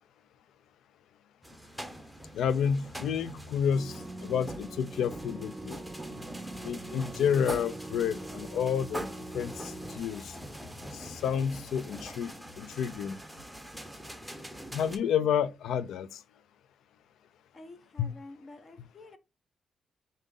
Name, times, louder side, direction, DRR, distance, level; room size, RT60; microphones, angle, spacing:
sound 1, 1.4-15.0, right 1 dB, ahead, 0.8 m, -43 dB
voice 1, 2.3-3.9 4.2-5.8 6.6-9.1 9.3-10.3 10.9-13.2 14.7-16.1 18.0-18.1, left 8 dB, 85° left, 0.3 m, -30 dB
sound 2, 2.4-13.4, left 3 dB, 60° left, 2.1 m, -54 dB
sound 3, 3.7-10.0, right 2 dB, 25° right, 0.4 m, -43 dB
voice 2, 17.5-19.2, left 2 dB, 35° left, 0.8 m, -49 dB
4.9 x 2.7 x 3.6 m
cardioid pair, 90°, 0 cm